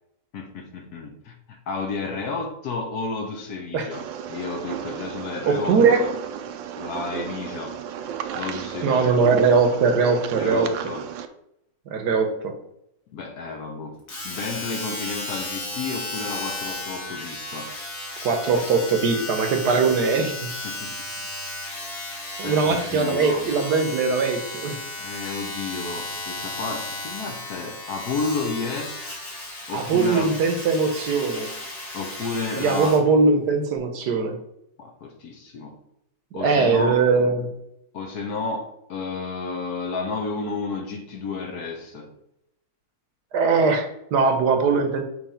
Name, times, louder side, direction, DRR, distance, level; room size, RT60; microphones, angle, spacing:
voice 1, 0.3-6.1 6.8-7.8 8.3-9.3 10.4-11.1 13.1-17.7 20.6-21.3 22.4-23.5 25.0-29.0 29.7-30.4 31.9-33.0 34.8-35.8 36.3-37.0 37.9-42.1, left 4 dB, 60° left, 1.2 m, -32 dB
sound 1, 3.9-11.3, right 8 dB, 85° right, 1.3 m, -33 dB
voice 2, 5.5-6.0 8.8-10.7 11.9-12.6 18.2-20.5 22.4-24.8 29.7-31.5 32.6-34.4 36.3-37.5 43.3-45.0, right 4 dB, 65° right, 1.3 m, -21 dB
Domestic sounds home sounds, 14.1-33.1 33.8-33.9, left 2 dB, 45° left, 2.2 m, -34 dB
6.4 x 3.2 x 5.6 m
omnidirectional pair, 2.0 m